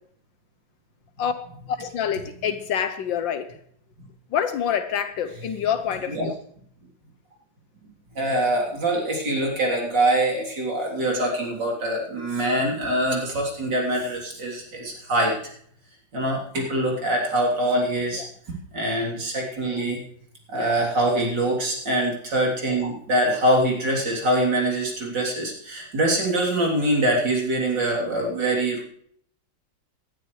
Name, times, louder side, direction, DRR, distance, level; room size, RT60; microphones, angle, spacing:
voice 1, 1.7-3.5 4.3-6.3 20.6-20.8, left 8 dB, 80° left, 10 dB, 1.6 m, -26 dB
voice 2, 8.2-15.3 16.1-18.2 18.7-20.0 20.5-28.8, right 1 dB, 65° right, -2 dB, 4.1 m, -24 dB
19.0 x 12.0 x 3.3 m, 0.63 s
omnidirectional pair, 2.0 m